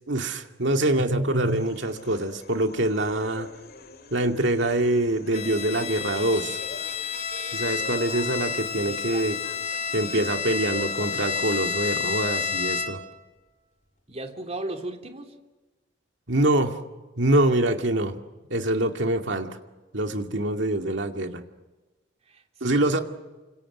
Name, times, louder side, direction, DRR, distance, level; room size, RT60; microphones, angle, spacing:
voice 1, 0.1-3.5 4.1-6.6 7.5-9.4 9.9-13.0 16.3-16.8 17.2-18.2 18.5-19.5 19.9-21.4 22.6-23.0, right 1 dB, 75° right, 5 dB, 2.3 m, -25 dB
sound 1, 1.4-11.5, left 3 dB, 55° left, 2.4 m, -44 dB
Bowed string instrument, 5.3-13.2, left 6 dB, 40° left, 2.1 m, -30 dB
voice 2, 8.9-9.3 14.1-15.4 22.2-23.0, right 2 dB, 35° right, 4 dB, 3.1 m, -36 dB
29.5 x 26.0 x 6.2 m, 1.2 s
head